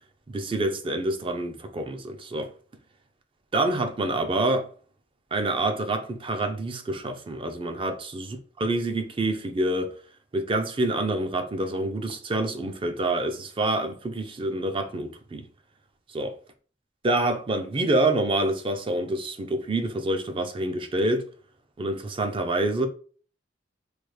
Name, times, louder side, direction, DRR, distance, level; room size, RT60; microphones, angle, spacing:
voice 1, 0.3-2.5 3.5-4.7 5.3-9.9 10.3-15.4 16.1-16.3 17.0-21.3 21.8-22.9, right 2 dB, 30° right, 0.4 m, -27 dB
3.3 x 2.2 x 3.1 m
head